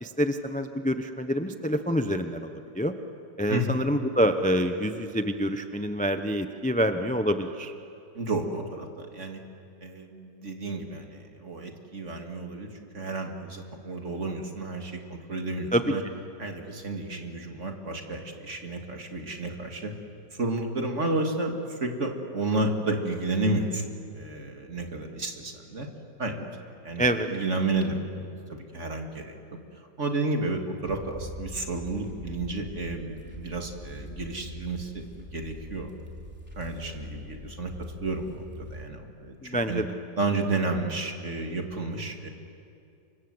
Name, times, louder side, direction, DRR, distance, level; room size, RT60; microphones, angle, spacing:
voice 1, 0.0-2.9 3.4-7.7 15.7-15.9 27.0-27.3 39.4-39.9, equal, 10° left, 8 dB, 0.4 m, -26 dB
voice 2, 3.5-3.8 8.1-9.4 9.8-16.0 16.4-19.9 20.4-23.8 24.1-25.9 26.2-26.5 26.8-29.3 30.0-35.9 36.6-39.8 40.2-42.3, right 2 dB, 40° right, 3 dB, 2.6 m, -31 dB
sound 1, 30.9-38.9, left 1 dB, 5° right, 3.4 m, -42 dB
28.0 x 25.0 x 7.9 m, 2.6 s
omnidirectional pair, 1.9 m